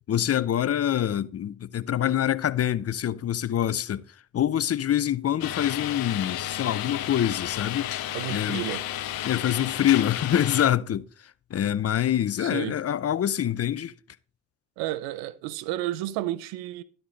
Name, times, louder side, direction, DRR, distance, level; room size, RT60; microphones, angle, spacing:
voice 1, 0.1-4.0 4.3-7.9 8.3-8.6 9.2-11.1 11.5-13.9, left 10 dB, 40° left, 0.6 m, -25 dB
sound 1, 5.4-10.7, left 12 dB, 75° left, 0.9 m, -32 dB
voice 2, 8.1-8.9 12.4-12.8 14.8-16.8, right 15 dB, 85° right, 0.6 m, -32 dB
11.5 x 7.8 x 3.9 m
hypercardioid pair, 50°, 36 cm